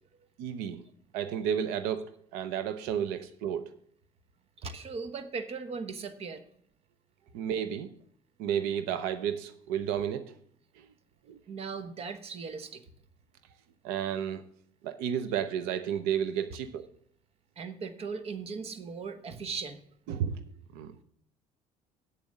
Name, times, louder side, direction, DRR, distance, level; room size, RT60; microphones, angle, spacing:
voice 1, 0.4-0.8 1.1-2.0 2.3-3.8 7.3-7.9 8.4-10.2 11.3-11.4 13.8-14.4 14.8-16.9 20.1-20.4 20.7-20.9, right 9 dB, 90° right, 11 dB, 0.7 m, -32 dB
voice 2, 4.6-6.4 11.5-12.8 17.6-19.8, right 5 dB, 45° right, 10 dB, 1.1 m, -38 dB
8.4 x 7.2 x 6.4 m, 0.64 s
cardioid pair, 110°, 15 cm